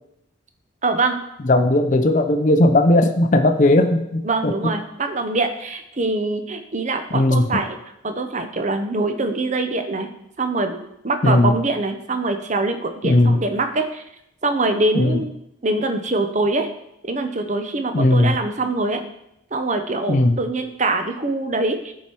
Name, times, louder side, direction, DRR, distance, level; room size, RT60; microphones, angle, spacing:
voice 1, 0.8-1.2 4.2-7.8 8.0-10.1 10.4-14.0 14.4-15.3 15.6-16.7 17.0-19.0 19.5-21.9, right 2 dB, 35° right, 6 dB, 0.7 m, -23 dB
voice 2, 1.4-4.7 7.1-7.6 11.2-11.6 13.0-13.4 14.9-15.2 17.9-18.4 20.1-20.4, left 1 dB, 40° left, 7 dB, 0.5 m, -17 dB
10.5 x 4.7 x 4.5 m, 0.80 s
head